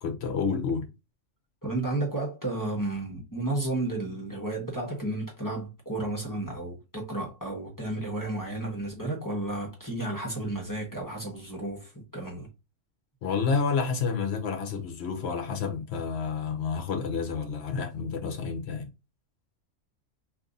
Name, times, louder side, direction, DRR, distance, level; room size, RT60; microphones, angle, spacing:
voice 1, 0.0-0.9 13.2-18.9, left 5 dB, 60° left, 0.8 m, -29 dB
voice 2, 1.6-12.5 18.2-18.3, right 2 dB, 20° left, 0.8 m, -32 dB
2.6 x 2.4 x 3.7 m
omnidirectional pair, 1.4 m